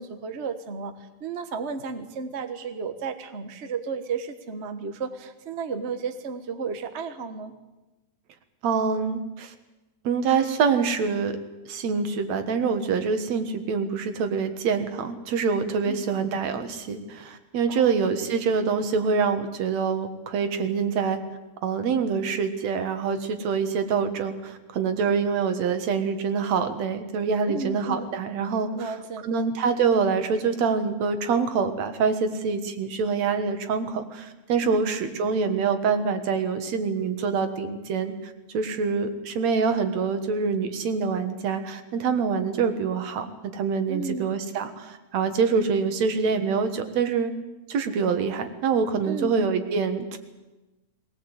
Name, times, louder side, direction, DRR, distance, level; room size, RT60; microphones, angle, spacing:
voice 1, 0.0-7.5 15.9-16.1 17.7-18.1 27.5-28.1 28.7-29.5 34.6-34.9 43.9-44.3 49.0-49.4, right 5 dB, 40° right, 8 dB, 0.9 m, -33 dB
voice 2, 8.6-9.5 10.0-11.4 11.7-21.2 21.6-28.9 29.2-47.3 47.7-50.2, right 5 dB, 70° right, 8 dB, 2.7 m, -25 dB
21.5 x 18.5 x 8.2 m, 1.1 s
omnidirectional pair, 3.3 m